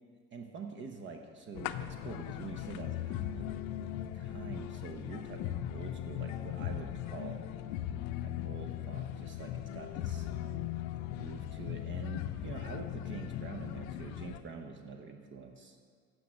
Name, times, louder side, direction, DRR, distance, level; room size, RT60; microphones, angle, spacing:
voice 1, 0.1-3.5 3.8-3.9 4.1-7.4 8.2-10.7 11.1-15.8, right 5 dB, 40° right, 4 dB, 0.8 m, -46 dB
sound 1, 1.5-14.4, left 11 dB, 75° left, 0.5 m, -38 dB
8.4 x 6.3 x 7.0 m, 2.1 s
supercardioid pair, 110°, 29 cm